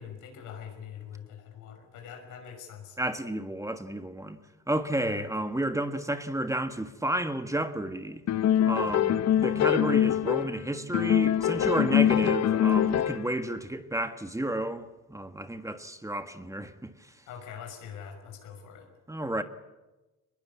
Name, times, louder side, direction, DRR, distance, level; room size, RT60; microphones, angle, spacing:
voice 1, 0.0-3.0 5.0-5.2 17.3-18.9, left 8 dB, 90° left, 5.8 m, -43 dB
voice 2, 3.0-4.4 4.7-8.2 8.6-17.1 19.1-19.4, right 1 dB, 10° right, 1.6 m, -31 dB
sound 1, 8.3-10.6 10.9-13.4, left 10 dB, 60° left, 0.8 m, -24 dB
23.0 x 20.5 x 8.5 m
cardioid pair, 90°, 30 cm